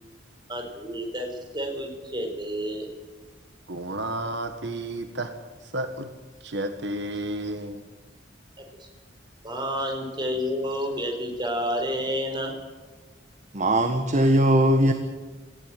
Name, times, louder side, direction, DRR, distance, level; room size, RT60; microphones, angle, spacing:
voice 1, 0.5-1.3 1.5-2.9 9.4-12.5, equal, 25° right, 3 dB, 4.9 m, -29 dB
voice 2, 3.7-5.3 5.6-6.1 6.4-7.8, right 1 dB, 70° right, 7 dB, 1.6 m, -31 dB
voice 3, 13.5-14.9, right 1 dB, 40° right, 7 dB, 1.6 m, -19 dB
19.5 x 15.5 x 9.3 m, 1.3 s
head